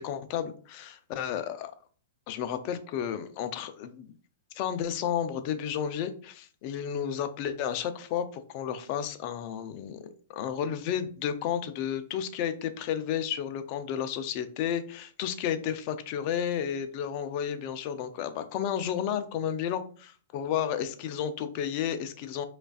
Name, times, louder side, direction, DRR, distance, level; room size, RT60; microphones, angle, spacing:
voice 1, 0.0-1.7 2.3-4.1 4.5-19.8 20.3-22.4, left 9 dB, 45° left, 10 dB, 0.5 m, -32 dB
5.0 x 2.5 x 2.4 m, 0.42 s
hypercardioid pair, 120°, 0 cm